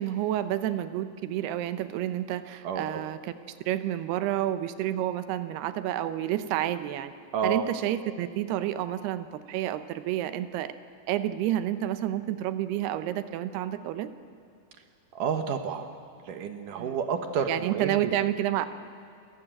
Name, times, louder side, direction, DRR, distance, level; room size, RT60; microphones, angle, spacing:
voice 1, 0.0-7.1 7.4-10.7 11.1-14.1 16.8-17.0 17.5-18.7, right 12 dB, 85° right, 12 dB, 2.9 m, -30 dB
voice 2, 2.6-3.0 7.3-7.6 15.2-15.9 16.3-18.1, right 6 dB, 65° right, 7 dB, 2.4 m, -30 dB
29.0 x 15.0 x 8.9 m, 2.5 s
omnidirectional pair, 4.6 m